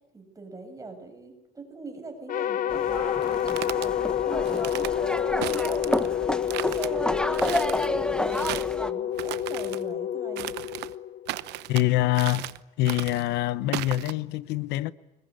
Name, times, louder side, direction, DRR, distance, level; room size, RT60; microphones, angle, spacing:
voice 1, 0.1-6.2 6.7-10.5, right 3 dB, 20° right, 7.6 m, -41 dB
sound 1, 2.3-11.6, left 10 dB, 55° left, 0.9 m, -29 dB
sound 2, 2.7-8.9, left 1 dB, 5° left, 1.4 m, -30 dB
sound 3, 3.2-3.9 4.4-4.9 5.4-6.1 6.5-6.9 7.3-7.9 8.3-8.8 9.1-9.8 10.4-10.9 11.3-11.8 12.1-12.6 12.8-13.3 13.7-14.1, right 16 dB, 85° right, 0.9 m, -35 dB
voice 2, 11.7-12.5 12.8-14.9, left 16 dB, 90° left, 0.9 m, -25 dB
25.5 x 21.5 x 9.7 m
cardioid pair, 110°, 17 cm